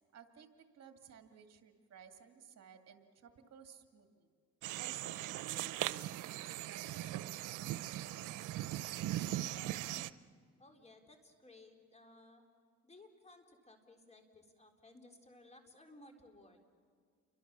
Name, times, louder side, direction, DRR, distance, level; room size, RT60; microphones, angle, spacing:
voice 1, 0.1-4.3 4.8-7.9, right 7 dB, 55° right, 6 dB, 2.2 m, -58 dB
sound 1, 4.6-10.1, right 14 dB, 90° right, 0.7 m, -39 dB
voice 2, 9.5-10.1 10.6-12.4 12.8-16.6, left 2 dB, 20° left, 4 dB, 4.0 m, -59 dB
29.5 x 24.0 x 6.9 m, 2.1 s
cardioid pair, 90°, 30 cm